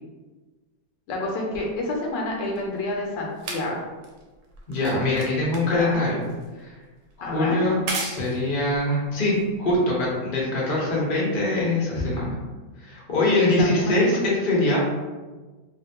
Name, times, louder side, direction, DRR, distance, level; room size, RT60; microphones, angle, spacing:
voice 1, 1.1-3.8 5.7-6.0 7.2-7.6 13.3-13.9, left 2 dB, 75° left, -1 dB, 1.1 m, -29 dB
sound 1, 1.5-10.1 11.0-11.1, right 3 dB, 75° right, 1.2 m, -38 dB
voice 2, 4.7-6.2 6.6-6.8 7.2-12.3 12.8-14.8, left 2 dB, 50° left, -5 dB, 0.6 m, -23 dB
3.0 x 2.5 x 2.8 m, 1.3 s
omnidirectional pair, 2.1 m